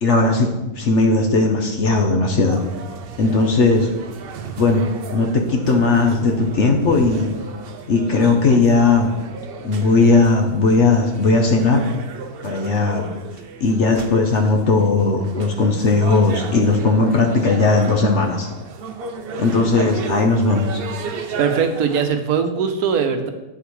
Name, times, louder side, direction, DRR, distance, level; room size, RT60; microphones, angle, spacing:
voice 1, 0.0-2.6 3.2-3.9 4.6-4.8 5.1-7.3 7.9-9.1 9.6-11.8 12.4-13.0 13.6-18.5 19.4-20.8, left 3 dB, 55° left, 3 dB, 1.0 m, -17 dB
sound 1, 2.5-22.1, right 6 dB, 60° right, 0.6 m, -34 dB
voice 2, 21.4-23.3, right 6 dB, 75° right, 7 dB, 1.3 m, -21 dB
9.2 x 7.1 x 3.1 m, 1.0 s
omnidirectional pair, 1.6 m